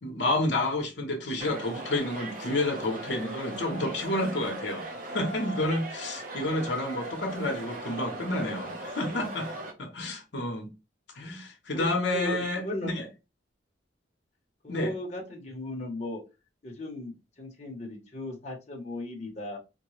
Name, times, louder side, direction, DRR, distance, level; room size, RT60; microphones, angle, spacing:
voice 1, 0.0-9.5 9.8-10.7 11.2-13.0 14.7-14.9, left 1 dB, 65° left, 0.9 m, -30 dB
sound 1, 1.4-9.7, right 1 dB, 45° right, 0.9 m, -39 dB
voice 2, 11.7-12.9 14.6-16.2 16.6-19.6, left 1 dB, 35° left, 0.9 m, -37 dB
4.5 x 2.2 x 3.1 m
head